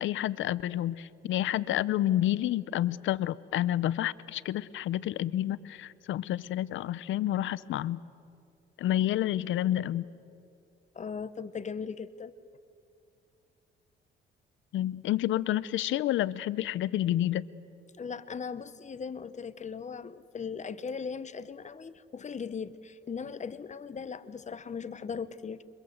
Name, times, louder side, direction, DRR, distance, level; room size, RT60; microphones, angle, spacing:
voice 1, 0.0-8.0 8.8-10.1 14.7-17.4, left 13 dB, 80° left, 18 dB, 0.7 m, -29 dB
voice 2, 10.9-12.3 18.0-25.6, left 6 dB, 35° left, 14 dB, 1.0 m, -38 dB
27.5 x 24.0 x 7.9 m, 2.4 s
cardioid pair, 90°, 20 cm